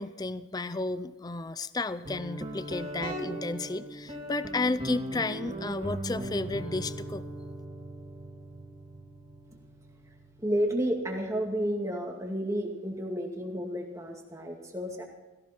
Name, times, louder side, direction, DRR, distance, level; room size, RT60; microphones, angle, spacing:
voice 1, 0.0-7.3, left 3 dB, 20° left, 15 dB, 0.5 m, -33 dB
Guitar, 2.0-11.5, right 1 dB, 35° right, 3.1 m, -39 dB
voice 2, 10.4-15.0, equal, 15° right, 1 dB, 2.2 m, -31 dB
17.0 x 16.5 x 4.4 m, 1.2 s
head